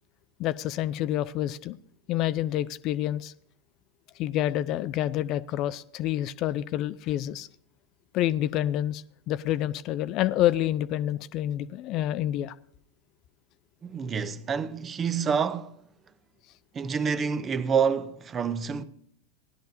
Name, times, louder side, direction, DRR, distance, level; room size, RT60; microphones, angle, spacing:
voice 1, 0.4-1.8 2.1-3.3 4.2-7.5 8.1-12.5, left 13 dB, 40° left, 0.4 m, -28 dB
voice 2, 13.8-15.8 16.7-18.8, right 6 dB, 25° right, 0.6 m, -27 dB
17.0 x 11.5 x 2.7 m
figure-of-eight pair, 85°, 0 cm